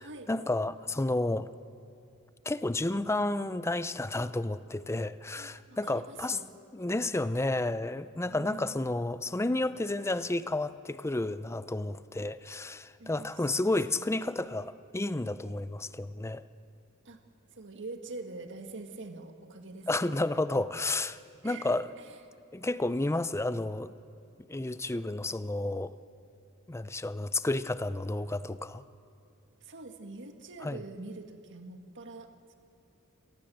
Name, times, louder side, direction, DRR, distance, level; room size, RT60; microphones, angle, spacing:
voice 1, 0.0-1.5 2.5-6.4 6.7-16.4 19.9-21.2 21.4-21.9 22.5-23.9 24.5-25.9 26.7-28.8 30.6-30.8, left 2 dB, 10° left, 0.5 m, -31 dB
voice 2, 5.4-6.4 8.3-8.7 13.0-14.0 17.1-17.2 17.5-19.9 21.4-22.1 29.6-32.6, right 3 dB, 55° right, 1.9 m, -45 dB
27.5 x 19.0 x 7.8 m
head